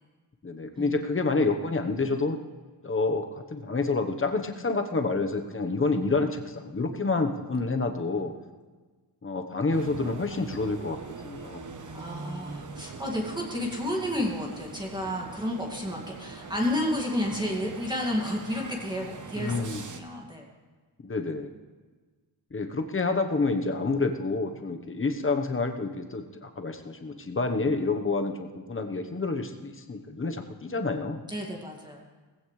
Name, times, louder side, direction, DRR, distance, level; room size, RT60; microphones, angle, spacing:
voice 1, 0.4-2.4 2.8-8.3 9.2-11.7 19.4-19.8 21.0-21.5 22.5-31.2, left 3 dB, 30° left, 5 dB, 1.1 m, -28 dB
sound 1, 9.7-20.0, right 4 dB, 45° right, 1.1 m, -42 dB
voice 2, 11.9-20.4 31.3-32.0, left 1 dB, 10° right, -1 dB, 2.1 m, -31 dB
19.5 x 16.0 x 3.3 m, 1.3 s
wide cardioid pair, 150°, 42 cm